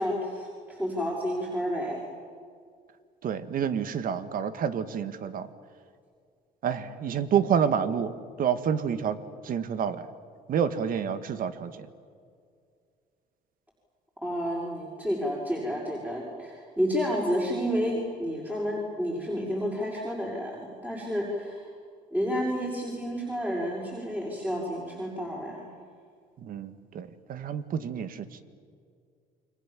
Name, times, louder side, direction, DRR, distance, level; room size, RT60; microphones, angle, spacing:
voice 1, 0.0-2.0 14.2-21.7 22.1-25.7, equal, 10° right, -4 dB, 6.2 m, -30 dB
voice 2, 3.2-5.5 6.6-8.1 8.4-9.2 9.4-10.1 10.5-11.9 26.4-28.4, right 8 dB, 55° right, 11 dB, 1.8 m, -28 dB
29.5 x 24.0 x 7.6 m, 2.2 s
cardioid pair, 110°, 17 cm